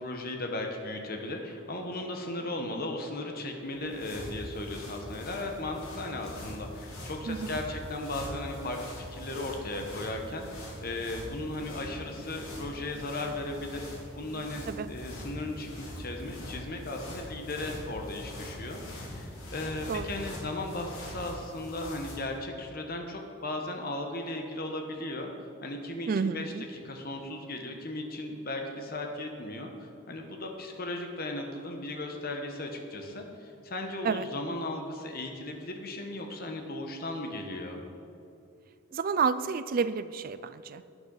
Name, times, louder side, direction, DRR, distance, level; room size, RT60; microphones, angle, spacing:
voice 1, 0.0-13.8 14.1-25.3 25.6-37.8, left 2 dB, 45° left, 3 dB, 1.1 m, -36 dB
sound 1, 3.6-22.4, left 1 dB, 80° left, 2.5 m, -43 dB
voice 2, 7.3-7.6 14.7-14.9 19.9-20.1 26.1-26.6 34.0-34.3 38.9-40.8, right 5 dB, 40° right, 14 dB, 0.3 m, -30 dB
sound 2, 10.9-15.9, equal, 85° right, 1.3 m, -54 dB
11.5 x 9.4 x 4.0 m, 2.5 s
head